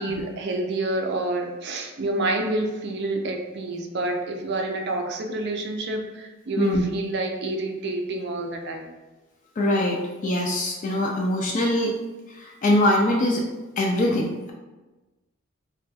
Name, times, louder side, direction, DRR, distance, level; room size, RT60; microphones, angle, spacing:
voice 1, 0.0-8.9, right 2 dB, 55° right, 3 dB, 0.4 m, -28 dB
voice 2, 9.6-11.9 12.3-13.4 13.8-14.5, left 1 dB, 40° left, -1 dB, 0.3 m, -23 dB
2.3 x 2.2 x 3.9 m, 1.1 s
head